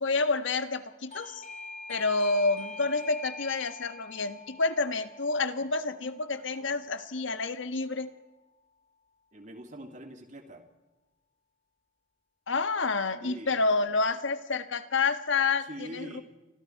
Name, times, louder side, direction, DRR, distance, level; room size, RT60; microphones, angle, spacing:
voice 1, 0.0-1.4 1.9-8.1 12.5-16.2, left 3 dB, 75° left, 10 dB, 1.4 m, -29 dB
Doorbell, 1.1-7.6, left 3 dB, 40° left, 2.1 m, -45 dB
voice 2, 9.3-10.6 13.2-13.6 15.7-16.2, right 1 dB, 40° right, 5 dB, 2.7 m, -43 dB
30.0 x 25.5 x 4.6 m, 1.1 s
head